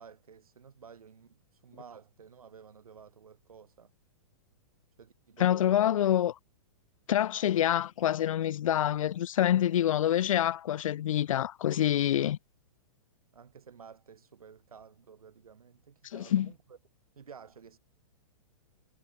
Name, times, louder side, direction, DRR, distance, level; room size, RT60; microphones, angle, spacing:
voice 1, 0.0-3.9 5.0-6.1 12.1-12.2 13.3-16.6 17.2-17.8, right 6 dB, 90° right, 7.3 m, -52 dB
voice 2, 5.4-6.3 7.1-12.4 16.1-16.5, left 11 dB, 65° left, 2.9 m, -26 dB
hypercardioid pair, 130°, 18 cm